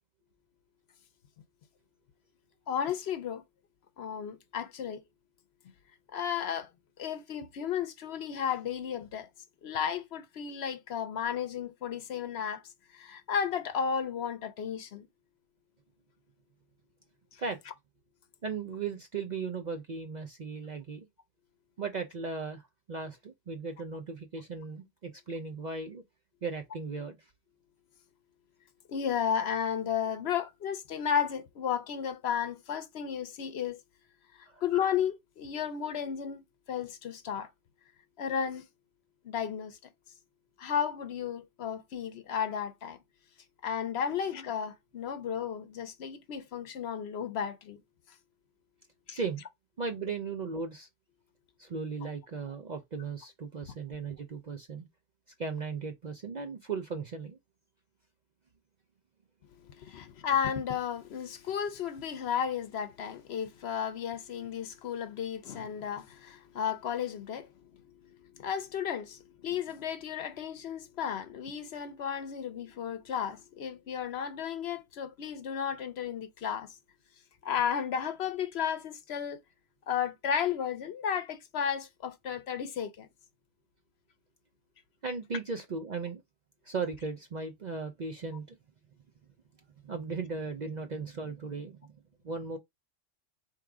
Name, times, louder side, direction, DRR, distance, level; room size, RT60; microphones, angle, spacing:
voice 1, 2.7-3.4 4.0-5.0 6.1-6.7 7.0-9.3 9.6-12.6 12.9-15.1 17.3-17.4 28.9-33.8 34.4-36.4 36.7-37.5 38.2-38.6 39.2-39.8 40.6-43.0 43.6-47.8 49.1-49.2 52.0-52.1 59.6-76.7 77.4-79.4 79.9-83.1, left 8 dB, 65° left, 0.8 m, -33 dB
voice 2, 18.4-21.1 21.8-26.0 26.4-27.3 34.4-34.6 49.1-49.4 49.8-50.9 51.6-54.9 55.4-57.4 59.9-60.0 85.0-86.2 86.6-88.6 89.8-91.9 92.2-92.6, right 4 dB, 50° right, 0.5 m, -37 dB
3.7 x 3.0 x 4.7 m
omnidirectional pair, 1.3 m